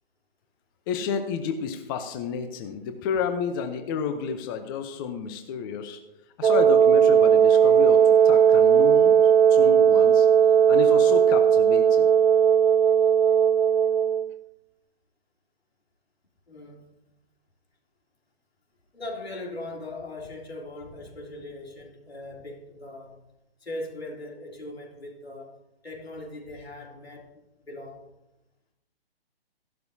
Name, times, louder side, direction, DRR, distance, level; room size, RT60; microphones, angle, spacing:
voice 1, 0.9-6.0 6.4-9.2 9.5-10.3 10.7-12.1, left 6 dB, 20° left, 0.7 m, -31 dB
Wind instrument woodwind instrument, 6.4-14.3, right 8 dB, 85° right, 0.5 m, -17 dB
voice 2, 16.5-16.9 18.9-23.2 23.6-25.6 25.8-28.1, left 2 dB, 90° left, 3.1 m, -39 dB
15.5 x 12.0 x 2.7 m
hypercardioid pair, 145°, 30 cm